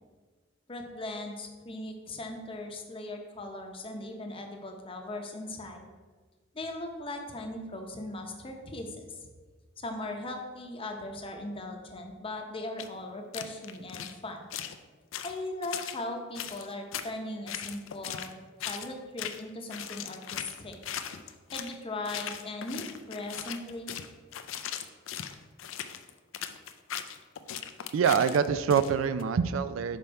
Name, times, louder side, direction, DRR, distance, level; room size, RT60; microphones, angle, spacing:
voice 1, 0.7-5.9 6.5-9.2 9.8-14.5 15.2-20.8 21.5-23.9, left 2 dB, 25° left, 3 dB, 0.8 m, -39 dB
sound 1, 12.8-12.9 13.3-14.1 14.5-14.8 15.1-16.0 16.3-17.1 17.5-18.3 18.6-18.9 19.2-19.4 19.7-21.8 22.0-29.2, left 9 dB, 70° left, 0.4 m, -38 dB
voice 2, 27.9-30.0, right 7 dB, 75° right, 12 dB, 0.3 m, -25 dB
5.5 x 5.2 x 4.4 m, 1.4 s
head